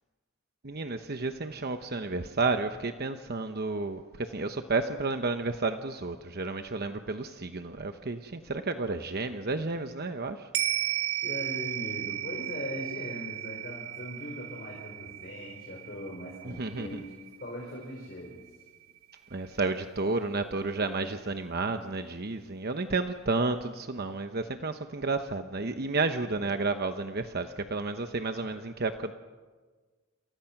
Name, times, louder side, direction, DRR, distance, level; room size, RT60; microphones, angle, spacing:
voice 1, 0.6-10.5 16.6-17.0 19.3-29.1, right 3 dB, 50° right, 7 dB, 1.0 m, -31 dB
sound 1, 10.5-19.1 19.5-19.6, right 13 dB, 90° right, 1.0 m, -35 dB
voice 2, 11.2-17.1 17.4-18.7 28.4-28.7, left 1 dB, 45° left, -1 dB, 4.8 m, -40 dB
29.0 x 29.0 x 6.0 m, 1.4 s
head